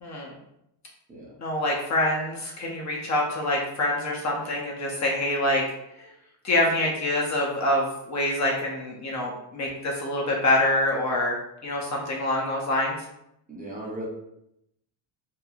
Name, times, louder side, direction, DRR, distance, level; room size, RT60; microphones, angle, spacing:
voice 1, 0.0-0.3 1.4-5.6 6.4-11.4 11.6-13.1, left 1 dB, 40° left, -2 dB, 0.5 m, -26 dB
voice 2, 13.5-14.1, right 1 dB, 20° right, -4 dB, 0.7 m, -36 dB
3.0 x 2.2 x 2.3 m, 0.82 s
cardioid pair, 115°, 45 cm